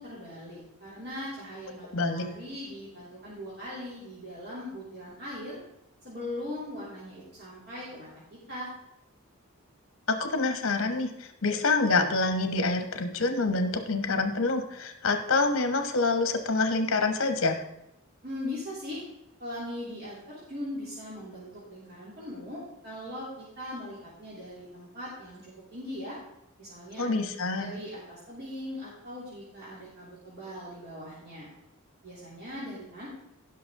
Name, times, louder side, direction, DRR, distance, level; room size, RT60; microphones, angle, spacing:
voice 1, 0.0-5.6 6.0-8.7 18.2-19.0 19.4-26.2 26.6-27.1 27.6-31.5 32.0-33.1, left 1 dB, 45° right, -8 dB, 3.2 m, -40 dB
voice 2, 1.9-2.2 10.1-17.6 27.0-27.7, left 3 dB, 65° left, 7 dB, 1.2 m, -26 dB
16.0 x 6.1 x 3.7 m, 0.84 s
head